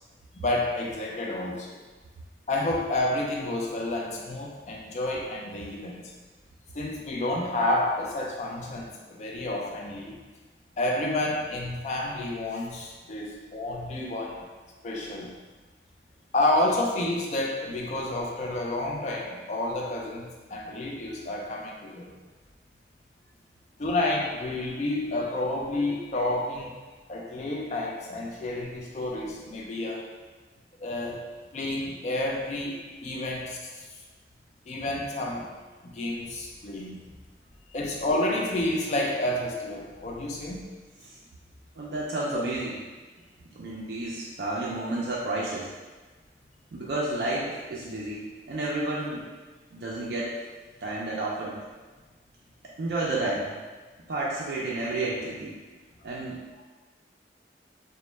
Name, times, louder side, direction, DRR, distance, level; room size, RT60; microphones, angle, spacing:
voice 1, 0.3-1.8 2.5-6.1 6.7-10.2 10.8-14.5 14.8-15.3 16.3-22.1 23.8-26.7 27.1-30.1 30.8-31.2 31.5-33.8 34.7-35.5 35.8-37.0 37.7-40.6, left 1 dB, 40° left, -1 dB, 0.3 m, -30 dB
voice 2, 41.8-42.8 43.5-45.7 46.7-49.3 49.7-50.4 50.8-51.6 52.8-53.5 54.1-55.5 56.0-56.4, right 2 dB, 60° right, -6 dB, 0.3 m, -31 dB
2.0 x 2.0 x 3.1 m, 1.3 s
head